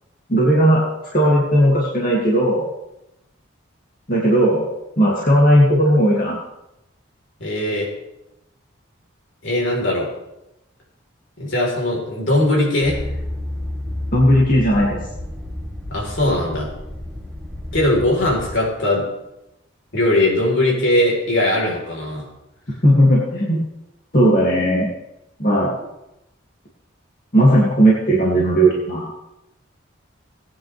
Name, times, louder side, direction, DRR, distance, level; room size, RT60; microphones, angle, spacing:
voice 1, 0.3-0.8 1.1-2.7 4.1-4.7 5.0-6.4 14.1-15.0 22.8-23.6 24.1-24.9 25.4-25.8 27.3-29.1, equal, 45° left, -5 dB, 2.6 m, -16 dB
voice 2, 7.4-7.9 9.4-10.1 11.4-13.0 15.9-16.7 17.7-19.1 19.9-22.2, left 1 dB, 65° left, -2 dB, 4.3 m, -20 dB
sound 1, 12.8-18.5, left 1 dB, ahead, 1.8 m, -31 dB
19.0 x 9.8 x 3.5 m, 0.90 s
head